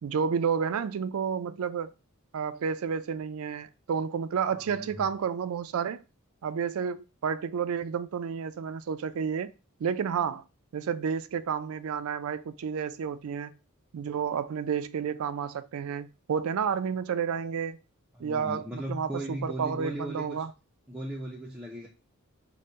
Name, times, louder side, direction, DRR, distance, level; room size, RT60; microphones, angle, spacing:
voice 1, 0.0-1.9 2.3-6.0 6.4-9.5 9.8-10.4 10.7-13.5 13.9-17.8 18.2-20.5, right 7 dB, 75° right, 0.4 m, -31 dB
voice 2, 4.5-5.1 18.1-20.4 20.9-21.9, right 1 dB, 5° right, 0.4 m, -37 dB
5.1 x 2.1 x 4.2 m
head